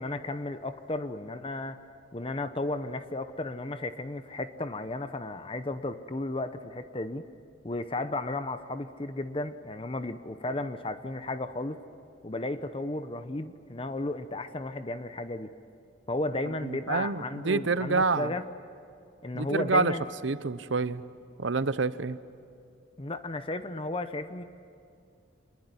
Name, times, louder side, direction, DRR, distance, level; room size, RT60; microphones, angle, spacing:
voice 1, 0.0-1.8 2.1-7.2 7.6-11.8 12.2-15.5 16.1-18.5 19.2-20.0 23.0-24.4, left 2 dB, 25° left, 10 dB, 0.8 m, -34 dB
voice 2, 16.6-18.3 19.3-19.9 20.2-21.0 21.4-22.2, right 4 dB, 70° right, 15 dB, 0.8 m, -27 dB
26.5 x 21.0 x 9.8 m, 2.4 s
head